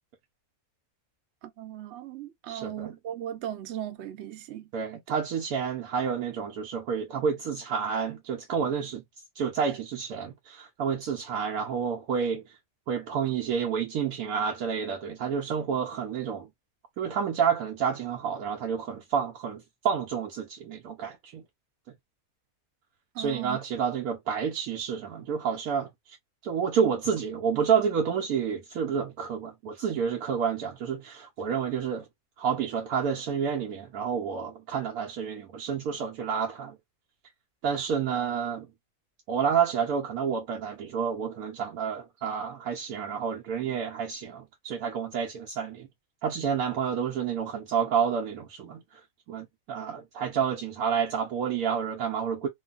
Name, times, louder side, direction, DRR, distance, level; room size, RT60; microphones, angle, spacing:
voice 1, 1.4-4.7 23.1-23.6, right 11 dB, 60° right, 0.8 m, -37 dB
voice 2, 2.5-2.9 4.7-9.0 9.4-12.4 12.9-16.5 17.0-21.4 23.2-26.2 26.4-32.1 32.4-36.8 37.6-38.7 39.3-45.9 46.2-49.0 49.3-52.5, right 7 dB, 90° right, 1.1 m, -29 dB
3.0 x 2.2 x 2.3 m
omnidirectional pair, 1.5 m